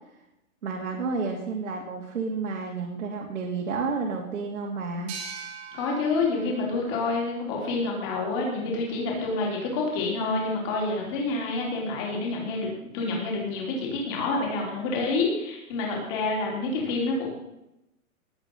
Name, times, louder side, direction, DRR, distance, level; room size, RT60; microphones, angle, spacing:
voice 1, 0.6-5.1, right 4 dB, 70° right, -1 dB, 3.2 m, -31 dB
sound 1, 5.1-8.5, right 5 dB, 15° right, 1.8 m, -43 dB
voice 2, 5.7-17.3, left 3 dB, 20° left, -1 dB, 3.8 m, -28 dB
19.5 x 8.1 x 5.6 m, 0.87 s
hypercardioid pair, 180°, 42 cm